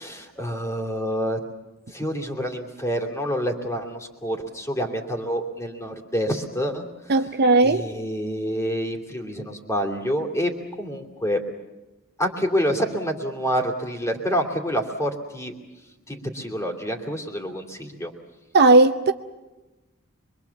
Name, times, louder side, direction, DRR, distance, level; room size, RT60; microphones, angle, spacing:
voice 1, 0.0-1.4 1.9-6.8 7.6-11.4 12.2-15.5 16.1-18.1, equal, 15° left, 2.9 m, -27 dB
voice 2, 7.1-7.8 18.5-19.1, right 2 dB, 50° right, 0.7 m, -16 dB
24.5 x 23.0 x 7.2 m
head